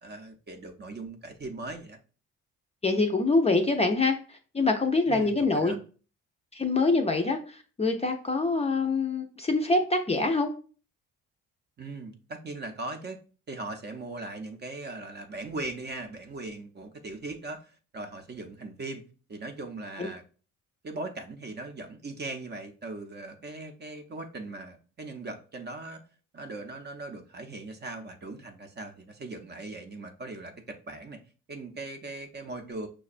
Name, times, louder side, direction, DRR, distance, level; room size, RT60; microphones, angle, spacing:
voice 1, 0.0-2.0 5.1-5.8 11.8-13.2 13.5-19.0 19.3-20.2 20.8-26.0 26.3-31.2 31.5-32.9, right 2 dB, 35° right, 6 dB, 0.5 m, -39 dB
voice 2, 2.8-5.8 6.5-10.5 20.0-20.1, left 3 dB, 20° left, 4 dB, 0.4 m, -25 dB
5.7 x 2.2 x 2.4 m, 0.38 s
cardioid pair, 90°, 30 cm